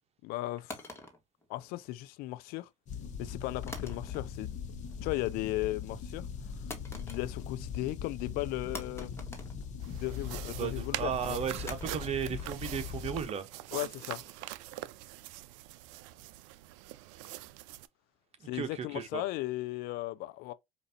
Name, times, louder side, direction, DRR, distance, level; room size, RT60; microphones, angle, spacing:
voice 1, 0.2-0.8 1.5-2.7 3.2-6.3 6.9-9.1 9.9-11.4 13.7-14.2 18.4-20.5, left 17 dB, 65° left, 0.4 m, -36 dB
sound 1, 0.7-2.1 3.7-4.5 4.8-5.3 6.7-7.6 7.9-8.0 8.7-10.3 11.7-14.7, left 2 dB, 15° left, 1.6 m, -47 dB
sound 2, 2.9-13.3, left 6 dB, 45° left, 1.1 m, -41 dB
sound 3, 9.8-17.9, right 16 dB, 75° right, 0.4 m, -44 dB
voice 2, 10.6-13.5 18.4-19.2, right 8 dB, 40° right, 1.1 m, -35 dB
5.1 x 2.6 x 2.7 m
supercardioid pair, 85°, 17 cm